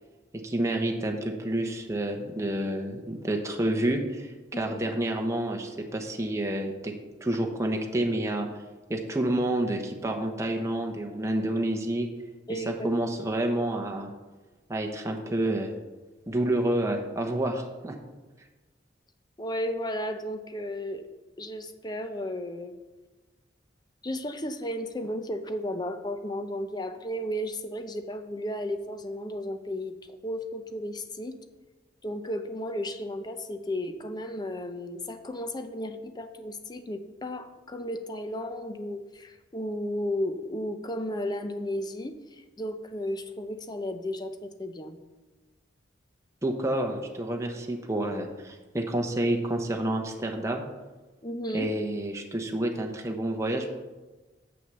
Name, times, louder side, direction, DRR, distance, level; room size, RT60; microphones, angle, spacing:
voice 1, 0.3-6.9 7.2-8.5 8.9-12.1 12.5-14.1 14.7-15.7 16.3-18.0 46.4-50.6 51.5-53.8, right 1 dB, 15° right, 2 dB, 0.9 m, -29 dB
voice 2, 4.5-5.0 12.5-12.9 19.4-21.0 21.4-22.8 24.0-31.4 32.0-45.0 51.2-51.8, left 1 dB, 25° left, 8 dB, 0.7 m, -34 dB
7.1 x 6.5 x 6.6 m, 1.2 s
head